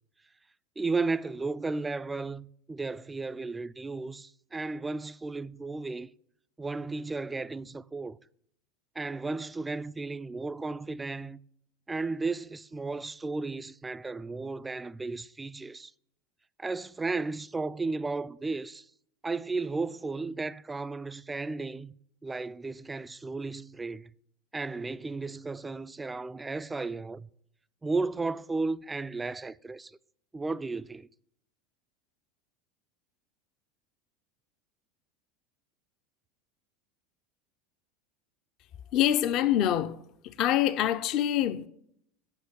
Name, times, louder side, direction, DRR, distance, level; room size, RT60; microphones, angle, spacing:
voice 1, 0.8-6.1 6.6-8.2 9.0-11.4 11.9-15.9 16.6-18.8 19.2-21.9 22.2-24.1 24.5-27.3 27.8-29.9 30.3-31.1, right 3 dB, 15° right, 0.3 m, -34 dB
voice 2, 38.9-40.0 40.2-41.7, left 11 dB, 45° left, 0.5 m, -25 dB
9.0 x 5.7 x 7.1 m
figure-of-eight pair, 75°, 0 cm